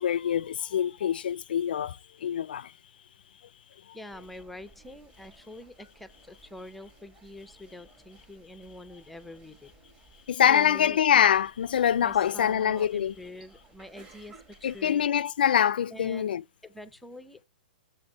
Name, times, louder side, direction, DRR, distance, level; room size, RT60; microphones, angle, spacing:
voice 1, 0.0-2.0 2.2-2.7 10.3-13.1 14.6-16.4, left 9 dB, 75° left, 0.3 m, -24 dB
voice 2, 3.9-9.7 10.5-11.0 12.0-15.1 15.9-16.3 16.6-17.4, left 1 dB, ahead, 0.4 m, -45 dB
sound 1, 4.1-15.1, right 3 dB, 20° right, 1.2 m, -57 dB
7.2 x 5.2 x 3.9 m
hypercardioid pair, 155°, 5 cm